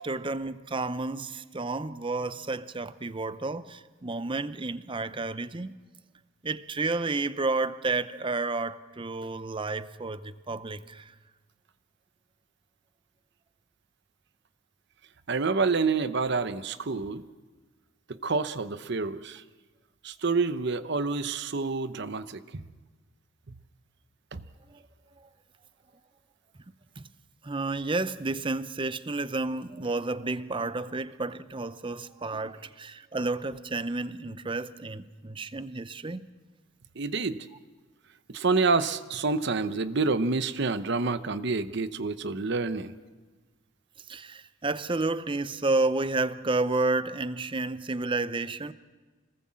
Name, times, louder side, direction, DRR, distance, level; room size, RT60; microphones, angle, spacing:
voice 1, 0.0-5.8 6.4-11.1 24.7-24.8 25.2-25.3 27.0-27.1 27.4-36.3 44.1-48.7, right 3 dB, 25° right, 0.7 m, -31 dB
voice 2, 15.3-17.2 18.1-19.4 20.0-22.4 24.3-24.4 37.0-37.5 38.3-42.9, right 4 dB, 55° right, 0.9 m, -28 dB
25.5 x 19.0 x 7.5 m
head